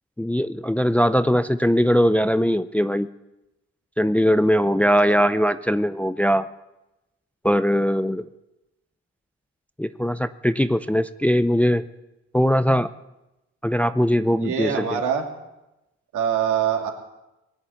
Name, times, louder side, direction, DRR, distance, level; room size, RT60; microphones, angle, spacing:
voice 1, 0.2-3.1 4.0-6.5 7.4-8.3 9.8-11.8 12.3-12.9 13.6-15.0, equal, 5° left, 12 dB, 0.4 m, -20 dB
voice 2, 14.4-15.2 16.1-16.9, right 8 dB, 80° right, 2 dB, 2.6 m, -24 dB
20.0 x 7.3 x 9.3 m, 0.97 s
cardioid pair, 90°, 30 cm